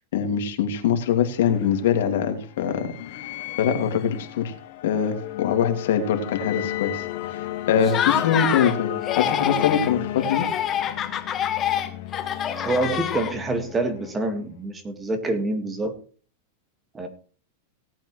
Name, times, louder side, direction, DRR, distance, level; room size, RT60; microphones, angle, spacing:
voice 1, 0.1-2.9 3.6-4.5 4.8-7.4 7.7-10.4, left 8 dB, 75° left, 5 dB, 2.4 m, -23 dB
sound 1, 1.0-14.6, left 14 dB, 60° left, 1.6 m, -34 dB
Laughter, 7.8-8.8 9.0-9.9 10.2-13.6, left 10 dB, 25° left, 1.3 m, -26 dB
voice 2, 12.6-15.9 16.9-17.1, right 2 dB, 15° right, 7 dB, 1.9 m, -26 dB
18.0 x 8.9 x 3.2 m, 0.40 s
supercardioid pair, 145°, 0 cm